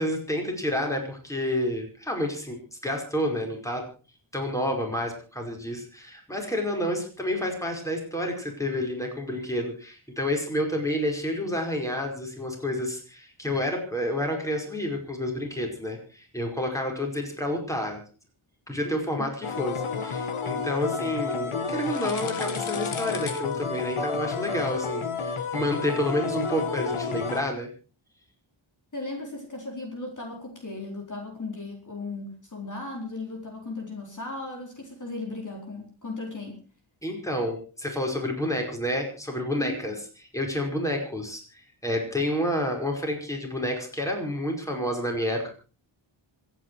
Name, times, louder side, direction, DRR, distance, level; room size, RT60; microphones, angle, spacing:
voice 1, 0.0-3.8 4.3-18.0 18.7-27.7 37.0-39.9 40.3-45.5, left 1 dB, 5° left, 1 dB, 5.1 m, -29 dB
voice 2, 18.8-19.3 28.9-36.6 39.6-39.8, left 2 dB, 35° left, 1 dB, 4.4 m, -36 dB
sound 1, 19.4-27.4, left 5 dB, 80° left, 2.0 m, -30 dB
26.0 x 9.6 x 4.7 m, 0.36 s
wide cardioid pair, 140°, 49 cm